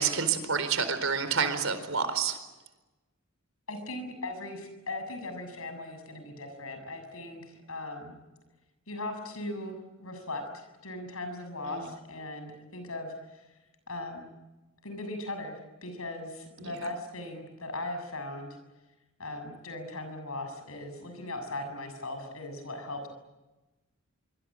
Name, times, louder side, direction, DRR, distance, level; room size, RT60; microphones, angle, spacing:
voice 1, 0.0-2.4 11.6-11.9 16.6-16.7, right 6 dB, 70° right, 10 dB, 4.3 m, -28 dB
voice 2, 3.7-8.1 8.9-13.5 13.9-14.3 14.8-18.6 19.2-23.1, left 2 dB, 85° left, 7 dB, 7.2 m, -39 dB
25.5 x 25.0 x 8.8 m, 1.1 s
head